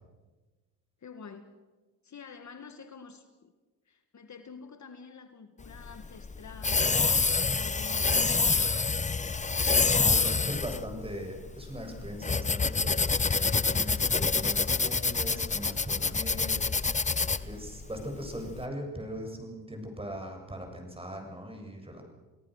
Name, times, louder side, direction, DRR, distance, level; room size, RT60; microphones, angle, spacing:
voice 1, 1.0-1.5 2.0-3.5 3.9-8.9, left 5 dB, 40° left, 9 dB, 1.8 m, -48 dB
sound 1, 5.6-18.6, left 4 dB, 15° left, 0.8 m, -27 dB
voice 2, 10.0-17.1 17.4-22.0, equal, 15° right, 3 dB, 7.5 m, -40 dB
29.5 x 18.0 x 6.6 m, 1.2 s
supercardioid pair, 70°, 42 cm